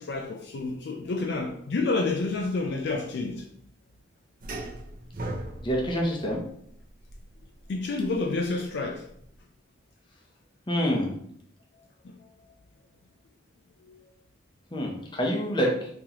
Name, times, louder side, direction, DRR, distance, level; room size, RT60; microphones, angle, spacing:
voice 1, 0.0-3.5 7.7-9.1 12.0-12.2 13.8-14.0, left 3 dB, 60° left, 0.4 m, -29 dB
sound 1, 4.4-9.4, right 1 dB, 45° right, 0.6 m, -39 dB
voice 2, 5.6-6.4 10.7-11.1 14.7-15.9, equal, 25° left, 0.7 m, -26 dB
3.8 x 3.0 x 2.9 m
head